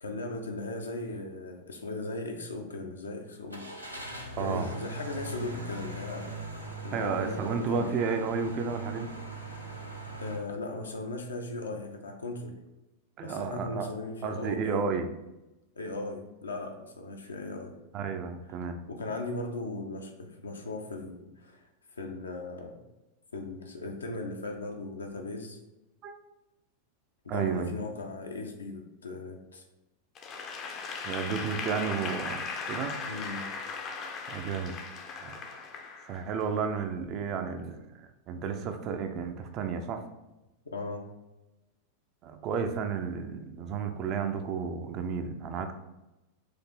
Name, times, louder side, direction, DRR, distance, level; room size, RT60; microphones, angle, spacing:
voice 1, 0.0-3.6 4.4-6.3 6.8-7.9 10.2-12.5 13.2-15.0 15.8-17.7 18.9-21.6 21.9-22.8 23.3-25.6 27.2-29.6 33.1-33.5 40.7-41.0, left 2 dB, 75° left, 3 dB, 0.6 m, -38 dB
Car / Engine starting, 3.5-10.4, right 2 dB, 90° right, 0.7 m, -40 dB
voice 2, 4.4-4.7 6.9-9.1 13.2-13.9 14.2-15.1 17.9-18.8 26.0-26.1 27.3-27.7 31.0-33.0 34.3-34.8 35.2-35.3 36.0-40.0 42.2-45.7, right 6 dB, 35° right, 7 dB, 0.4 m, -32 dB
Applause / Crowd, 30.2-36.4, left 5 dB, 30° left, 0.5 m, -38 dB
4.7 x 2.5 x 3.7 m, 1.0 s
figure-of-eight pair, 90°, 0 cm